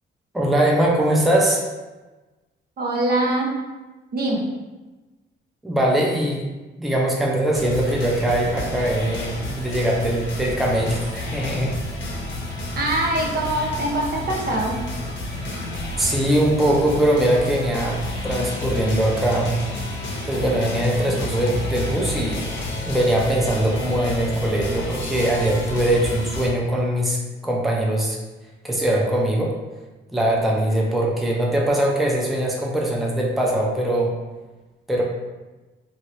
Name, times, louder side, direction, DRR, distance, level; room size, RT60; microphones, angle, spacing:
voice 1, 0.3-1.6 5.6-6.4 6.8-11.7 16.0-18.0 18.2-19.5 20.3-22.5 22.9-28.2 28.6-29.5 30.1-34.1 34.9-35.0, right 1 dB, ahead, -3 dB, 0.5 m, -21 dB
voice 2, 2.8-3.5 4.1-4.5 12.8-14.8, right 1 dB, 55° right, -1 dB, 0.7 m, -23 dB
sound 1, 7.5-26.5, left 2 dB, 75° left, 0.8 m, -30 dB
2.8 x 2.6 x 3.0 m, 1.2 s
cardioid pair, 90°, 20 cm